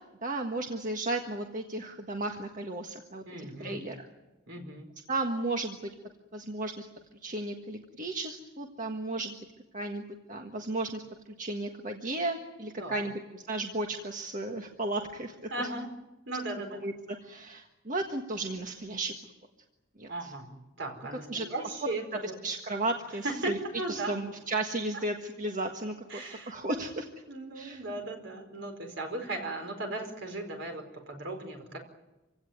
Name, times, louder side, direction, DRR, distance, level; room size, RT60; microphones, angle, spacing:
voice 1, 0.2-4.0 5.1-5.9 6.3-6.9 7.2-9.3 9.7-11.0 11.4-15.7 16.7-16.9 17.2-19.1 20.0-20.3 21.3-21.5 22.4-23.6 23.9-27.1 27.5-27.8, right 2 dB, 45° right, 3 dB, 1.5 m, -34 dB
voice 2, 3.2-3.9 4.5-4.9 12.8-13.1 15.5-15.9 16.3-16.8 20.1-20.5 20.8-22.3 23.2-24.1 26.1-26.8 27.3-31.8, right 2 dB, 70° right, 4 dB, 4.7 m, -37 dB
26.5 x 17.0 x 9.4 m, 1.1 s
head